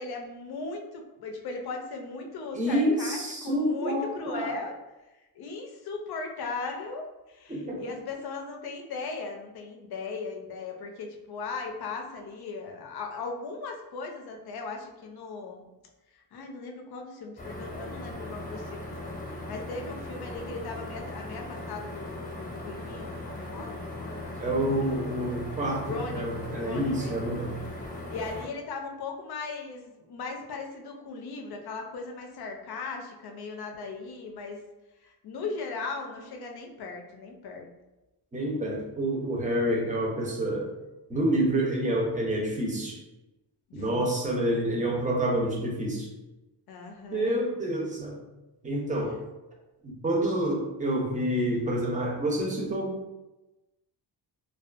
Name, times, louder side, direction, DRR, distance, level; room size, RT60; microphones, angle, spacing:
voice 1, 0.0-4.8 5.3-15.7 16.1-18.9 19.2-24.7 25.8-27.1 28.1-34.6 35.0-37.7 43.7-44.1 46.7-47.4, left 4 dB, 60° left, 2 dB, 0.5 m, -38 dB
voice 2, 2.5-4.5 7.5-7.9 24.4-27.6 38.3-40.7 41.1-43.0 43.7-46.1 47.1-48.2 48.6-49.2 49.8-53.1, right 1 dB, 20° right, -2 dB, 0.6 m, -28 dB
sound 1, 17.4-28.4, left 1 dB, 20° left, 0.8 m, -39 dB
2.5 x 2.3 x 2.4 m, 1.0 s
cardioid pair, 100°, 43 cm